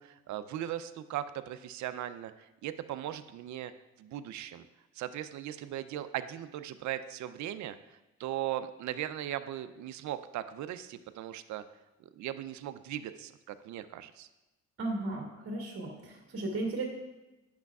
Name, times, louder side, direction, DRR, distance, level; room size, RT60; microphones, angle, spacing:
voice 1, 0.0-3.7 4.0-4.6 4.9-11.6 12.0-14.3, right 12 dB, 70° right, 11 dB, 0.5 m, -38 dB
voice 2, 14.8-16.8, right 2 dB, 45° right, -3 dB, 2.2 m, -35 dB
10.5 x 6.1 x 2.4 m, 1.0 s
cardioid pair, 90°, 30 cm